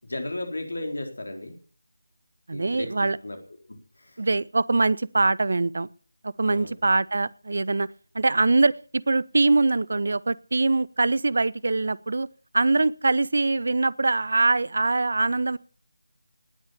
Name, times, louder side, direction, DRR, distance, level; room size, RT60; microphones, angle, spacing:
voice 1, 0.0-1.5 2.5-3.4 3.7-4.3 6.5-6.8, left 2 dB, 60° left, 5 dB, 4.4 m, -35 dB
voice 2, 2.5-3.2 4.2-5.9 6.2-7.9 8.1-12.3 12.5-15.6, right 3 dB, 50° right, 23 dB, 0.7 m, -23 dB
18.5 x 8.8 x 6.9 m, 0.42 s
figure-of-eight pair, 160°, 0 cm